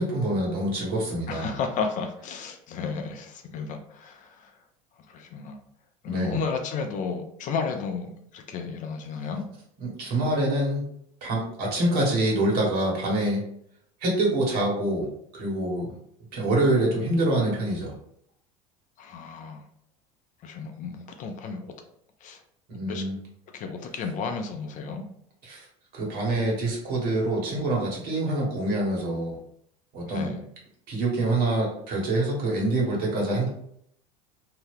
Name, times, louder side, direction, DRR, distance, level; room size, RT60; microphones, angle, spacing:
voice 1, 0.0-1.5 6.1-6.4 9.8-10.8 11.2-13.4 14.0-15.1 15.3-15.9 16.3-17.9 22.7-23.1 25.5-25.6 25.9-29.4 29.9-30.3 30.9-33.5, right 1 dB, 55° right, -3 dB, 1.5 m, -25 dB
voice 2, 1.3-4.6 5.0-5.6 6.0-9.4 19.0-19.6 20.4-21.7 22.2-22.4 22.9-23.1 23.5-25.0 30.1-30.5, left 5 dB, 45° left, 5 dB, 0.5 m, -33 dB
2.8 x 2.2 x 3.3 m, 0.69 s
hypercardioid pair, 95°, 19 cm